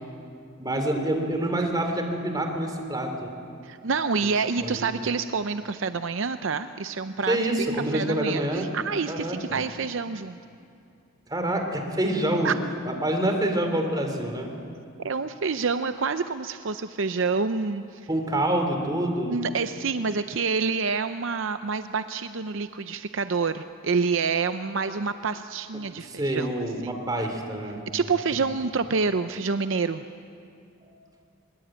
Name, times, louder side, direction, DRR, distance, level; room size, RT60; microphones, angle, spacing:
voice 1, 0.6-3.3 4.6-5.1 7.3-8.7 9.1-9.6 11.3-12.5 12.9-14.5 18.1-19.4 26.0-27.8 30.8-30.9, right 1 dB, 20° right, 4 dB, 3.0 m, -27 dB
voice 2, 3.6-7.4 7.9-10.4 12.4-12.5 15.0-18.0 19.3-26.5 27.9-30.0, right 4 dB, 65° right, 10 dB, 0.6 m, -27 dB
22.5 x 21.5 x 8.9 m, 2.4 s
head